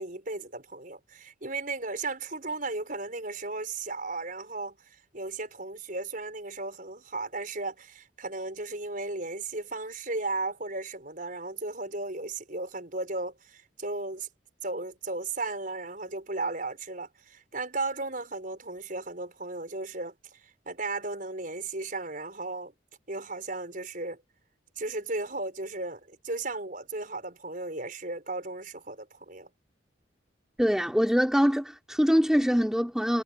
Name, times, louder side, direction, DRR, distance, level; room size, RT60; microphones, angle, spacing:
voice 1, 0.0-4.8 5.1-14.3 14.6-20.4 20.7-22.7 23.1-24.2 24.8-29.5, right 3 dB, 45° right, 5.8 m, -35 dB
voice 2, 30.6-33.2, equal, 5° right, 2.8 m, -24 dB
head